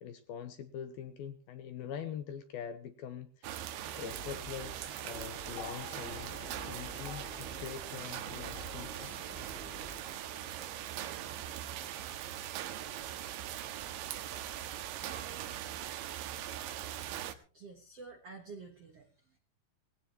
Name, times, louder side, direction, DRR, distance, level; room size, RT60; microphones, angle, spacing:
voice 1, 0.0-3.6 4.0-6.3 6.6-9.3, left 8 dB, 75° left, 9 dB, 2.4 m, -44 dB
sound 1, 3.4-17.3, right 11 dB, 85° right, 3.5 m, -41 dB
sound 2, 3.8-9.9, equal, 20° right, 2.8 m, -50 dB
sound 3, 5.5-13.9 14.9-15.0, left 6 dB, 90° left, 6.0 m, -54 dB
voice 2, 17.5-19.4, right 4 dB, 65° right, 5 dB, 1.4 m, -50 dB
19.0 x 17.0 x 3.0 m, 0.35 s
omnidirectional pair, 5.2 m